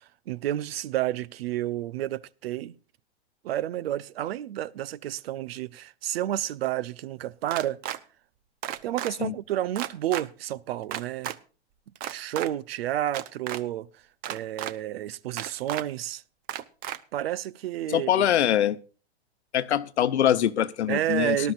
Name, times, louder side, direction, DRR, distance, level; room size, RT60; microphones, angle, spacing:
voice 1, 0.3-2.8 3.4-7.8 8.8-11.3 12.1-14.0 14.3-16.2 17.1-18.3 20.9-21.5, right 13 dB, 65° right, 0.7 m, -30 dB
sound 1, 7.5-8.0 8.6-9.1 9.7-10.2 10.9-11.4 12.0-12.5 13.1-13.6 14.2-14.7 15.4-15.8 16.5-17.0, right 12 dB, 25° right, 0.7 m, -33 dB
voice 2, 17.9-18.8 19.5-21.5, left 11 dB, 80° left, 1.0 m, -23 dB
18.5 x 12.0 x 2.5 m
hypercardioid pair, 130°, 33 cm